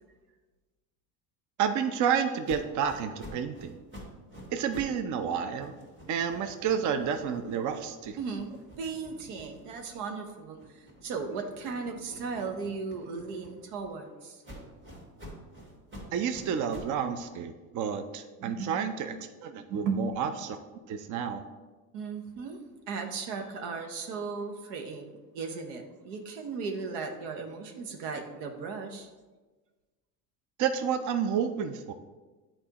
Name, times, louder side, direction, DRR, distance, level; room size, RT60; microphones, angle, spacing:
voice 1, 1.6-3.8 4.5-5.7 6.1-8.2 16.1-19.2 19.4-20.6 20.9-21.4 30.6-31.9, right 7 dB, 40° right, 9 dB, 0.5 m, -30 dB
sound 1, 2.4-5.0 5.3-10.1 10.5-13.9 14.4-17.0, right 1 dB, 25° right, 1.8 m, -49 dB
voice 2, 8.2-8.5 8.8-14.4 18.4-18.8 19.7-20.1 21.9-22.6 22.9-29.1, right 5 dB, 85° right, 4 dB, 0.9 m, -36 dB
8.8 x 4.2 x 2.9 m, 1.3 s
supercardioid pair, 90°, 46 cm